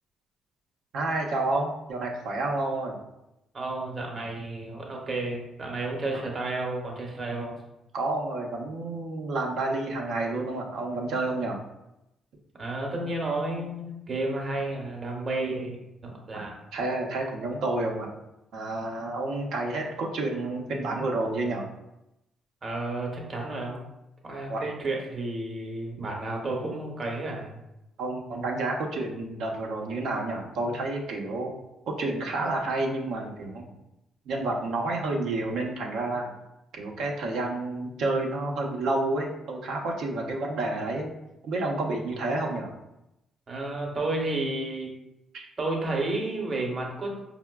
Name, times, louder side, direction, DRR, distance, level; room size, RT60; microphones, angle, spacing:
voice 1, 0.9-3.0 6.1-6.2 7.9-11.6 16.3-16.4 16.7-18.1 18.5-21.7 24.5-24.7 28.0-31.6 31.9-33.7 34.3-36.3 36.7-41.1 41.4-42.7 45.3-45.5, right 2 dB, 80° right, 0 dB, 0.6 m, -30 dB
voice 2, 3.5-7.5 12.6-16.6 22.6-23.8 24.2-27.6 43.5-44.9 45.6-47.2, right 2 dB, 40° right, 0 dB, 0.8 m, -31 dB
4.6 x 2.1 x 2.2 m, 0.90 s
cardioid pair, 90°, 0 cm